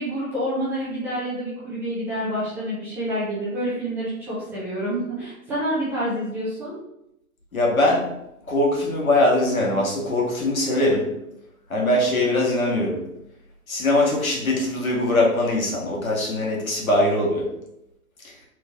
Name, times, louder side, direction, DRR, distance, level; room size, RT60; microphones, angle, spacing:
voice 1, 0.0-6.7, equal, 5° right, -10 dB, 0.5 m, -28 dB
voice 2, 7.5-8.1 8.5-11.1 11.7-13.0 13.7-17.5 18.2-18.3, left 1 dB, 70° left, -2 dB, 1.8 m, -21 dB
3.8 x 3.6 x 3.7 m, 0.84 s
figure-of-eight pair, 120°, 43 cm